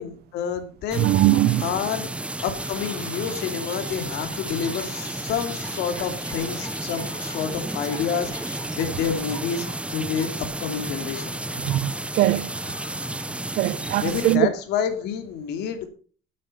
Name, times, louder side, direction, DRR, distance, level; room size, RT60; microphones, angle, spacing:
voice 1, 0.0-1.1 1.6-2.1 2.4-10.3 10.6-11.3 14.0-15.9, left 7 dB, 85° left, 2.6 m, -29 dB
sound 1, 0.9-14.4, right 1 dB, 5° right, 0.6 m, -32 dB
voice 2, 1.0-1.6 11.6-12.5 13.6-14.5, right 15 dB, 70° right, 0.5 m, -21 dB
Chirp tweet, 2.4-13.5, left 1 dB, 20° left, 6.0 m, -44 dB
13.0 x 8.5 x 5.6 m
cardioid pair, 110°, 17 cm